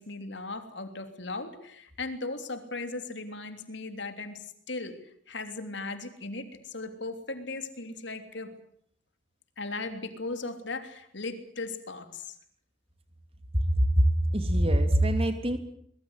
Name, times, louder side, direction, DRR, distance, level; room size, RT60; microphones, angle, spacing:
voice 1, 0.0-8.6 9.6-12.4, left 3 dB, 65° left, 8 dB, 3.3 m, -37 dB
voice 2, 13.7-15.6, right 1 dB, 30° right, 8 dB, 2.9 m, -23 dB
24.0 x 21.5 x 8.2 m, 0.67 s
head